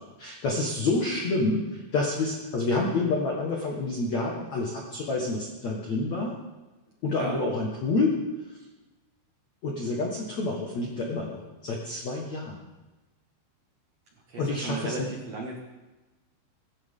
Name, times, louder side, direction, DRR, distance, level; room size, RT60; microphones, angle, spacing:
voice 1, 0.0-6.3 7.0-8.2 9.6-12.6 14.4-15.1, left 3 dB, 65° left, -1 dB, 1.7 m, -28 dB
voice 2, 14.3-15.6, right 3 dB, 55° right, -2 dB, 1.8 m, -35 dB
22.5 x 12.5 x 3.8 m, 1.1 s
omnidirectional pair, 5.7 m